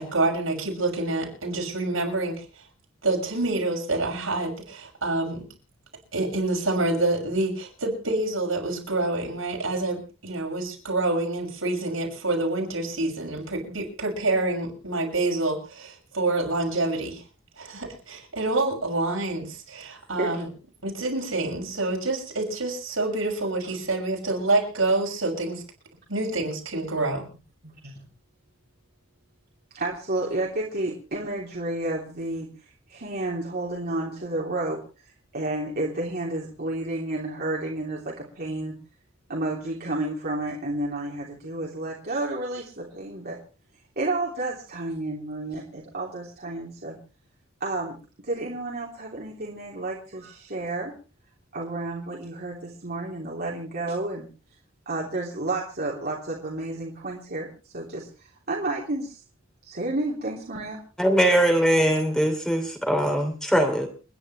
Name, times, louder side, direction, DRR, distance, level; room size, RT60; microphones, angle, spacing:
voice 1, 0.0-2.3 3.0-5.5 6.1-17.2 17.6-20.5 20.8-25.6 26.1-27.2, right 2 dB, 80° right, 1 dB, 6.4 m, -27 dB
voice 2, 27.6-28.0 29.7-32.5 32.9-34.8 35.3-38.7 39.3-43.4 44.0-47.0 47.6-48.0 48.2-50.9 51.5-54.3 54.8-57.5 57.7-59.2 59.6-60.8, right 2 dB, 50° right, -3 dB, 3.1 m, -31 dB
voice 3, 61.0-63.9, right 1 dB, 5° left, 4 dB, 2.8 m, -21 dB
29.5 x 10.5 x 3.2 m, 0.33 s
head